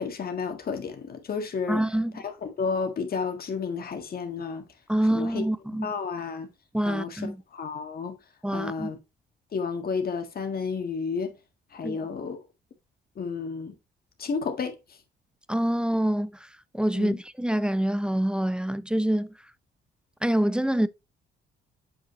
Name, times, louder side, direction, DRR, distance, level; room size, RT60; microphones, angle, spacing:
voice 1, 0.0-1.8 2.1-4.7 5.1-5.4 5.8-6.5 6.8-8.1 8.5-9.0 9.5-11.3 11.7-12.4 13.2-13.7 14.2-14.7 16.9-17.2, left 5 dB, 50° left, 1.6 m, -31 dB
voice 2, 1.7-2.1 4.9-5.9 6.7-7.4 8.4-8.9 11.8-12.0 15.5-16.3 16.7-19.3 20.2-20.9, right 1 dB, 5° right, 0.4 m, -25 dB
7.6 x 5.4 x 2.9 m
cardioid pair, 90°, 20 cm